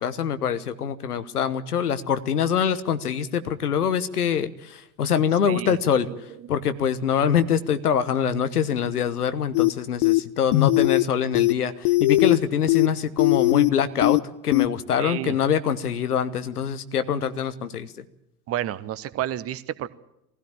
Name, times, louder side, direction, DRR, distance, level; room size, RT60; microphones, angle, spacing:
voice 1, 0.0-6.1 6.5-18.0, left 8 dB, 70° left, 12 dB, 1.2 m, -24 dB
voice 2, 5.5-5.8 6.1-6.5 15.0-15.4 18.5-19.9, right 12 dB, 30° right, 15 dB, 1.0 m, -31 dB
sound 1, 9.5-9.7 10.0-10.2 10.5-11.0 11.4-11.5 11.9-12.4 12.7-12.9 13.2-13.7 14.0-14.2 14.5-14.7, left 21 dB, 45° left, 0.8 m, -19 dB
20.5 x 16.0 x 8.9 m, 0.84 s
figure-of-eight pair, 80°, 47 cm